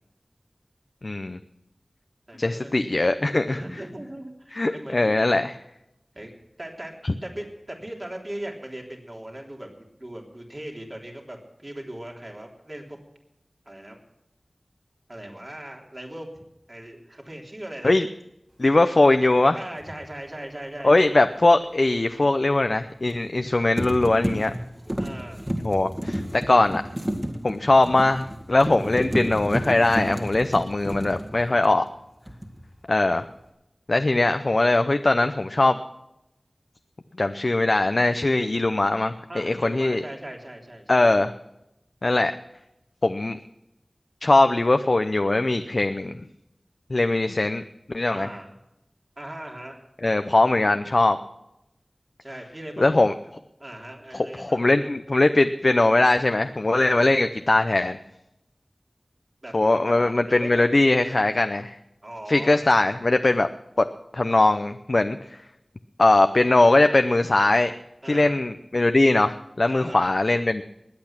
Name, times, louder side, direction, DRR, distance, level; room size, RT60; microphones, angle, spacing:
voice 1, 1.0-1.4 2.4-3.6 4.5-5.5 7.0-7.1 17.8-18.0 18.6-19.6 20.8-24.5 25.6-26.8 27.4-31.8 32.9-33.2 33.9-35.8 37.2-40.0 40.9-41.3 42.0-42.3 43.0-43.4 44.2-46.2 46.9-47.6 47.9-48.3 50.0-51.2 52.8-53.1 54.1-58.0 59.5-61.8 62.3-63.5 64.1-65.2 66.0-67.7 68.1-70.6, left 2 dB, 65° left, 8 dB, 0.6 m, -20 dB
voice 2, 2.3-2.7 3.5-5.1 6.1-6.9 7.2-13.0 13.7-14.0 15.1-16.3 16.7-17.9 19.6-20.9 25.0-25.4 39.3-41.1 48.1-48.5 49.2-49.8 52.2-53.1 53.6-54.6 56.7-57.1 59.4-61.1 62.0-62.6 68.0-68.4 69.7-70.1, right 1 dB, 40° right, 0 dB, 3.5 m, -39 dB
sound 1, 19.8-20.0 23.1-23.5 23.8-32.0 32.3-32.7, equal, 25° right, 2.3 m, -31 dB
20.5 x 8.7 x 5.9 m, 0.87 s
wide cardioid pair, 45°, 0 cm